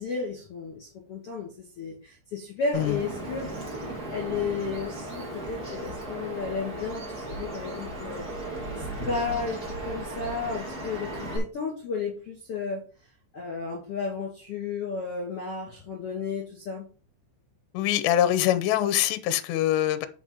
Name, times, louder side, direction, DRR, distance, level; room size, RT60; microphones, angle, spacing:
voice 1, 0.0-1.5 1.8-8.3 8.8-12.8 13.3-16.9, left 4 dB, 45° left, 2.1 m, -33 dB
Bird vocalization bird call bird song, 2.7-11.4, right 1 dB, 45° right, 1.3 m, -36 dB
voice 2, 17.7-20.1, left 12 dB, 80° left, 2.5 m, -24 dB
9.2 x 5.5 x 3.9 m
omnidirectional pair, 5.7 m